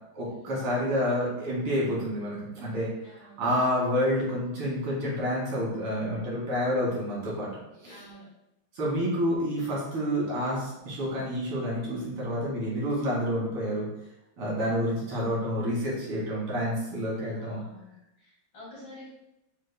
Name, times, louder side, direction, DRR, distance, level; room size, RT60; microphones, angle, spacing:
voice 1, 0.1-2.9 3.2-7.5 7.8-8.0 8.7-13.9 14.4-17.6, equal, 80° right, -6 dB, 2.6 m, -29 dB
voice 2, 3.0-3.4 7.8-8.3 11.1-11.2 15.1-15.3 17.3-19.1, left 2 dB, 55° left, -7 dB, 2.3 m, -49 dB
6.4 x 3.3 x 2.2 m, 0.90 s
omnidirectional pair, 2.4 m